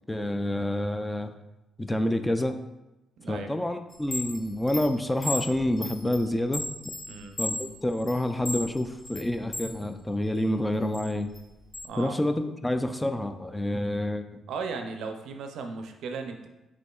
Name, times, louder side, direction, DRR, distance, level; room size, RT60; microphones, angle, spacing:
voice 1, 0.1-1.3 1.8-2.5 3.3-6.7 7.4-11.3 12.0-14.2, left 1 dB, 10° left, 8 dB, 0.3 m, -28 dB
Chime, 3.9-9.8 10.2-11.9, left 1 dB, 55° left, 0.7 m, -36 dB
voice 2, 11.8-12.2 14.5-16.5, right 4 dB, 75° right, 6 dB, 0.4 m, -36 dB
5.1 x 3.5 x 2.3 m, 0.99 s
cardioid pair, 90°, 0 cm